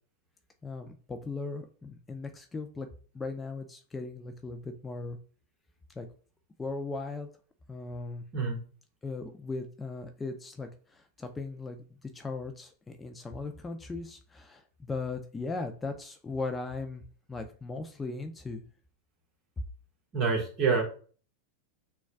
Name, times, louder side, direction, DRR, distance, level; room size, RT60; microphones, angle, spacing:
voice 1, 0.6-2.9 3.1-5.2 6.0-6.1 6.6-7.3 7.7-8.2 9.0-17.0 17.3-18.6, left 3 dB, 15° left, 6 dB, 0.4 m, -38 dB
voice 2, 20.1-20.8, right 5 dB, 40° right, 1 dB, 1.4 m, -26 dB
6.1 x 2.3 x 2.2 m, 0.41 s
hypercardioid pair, 100°, 0 cm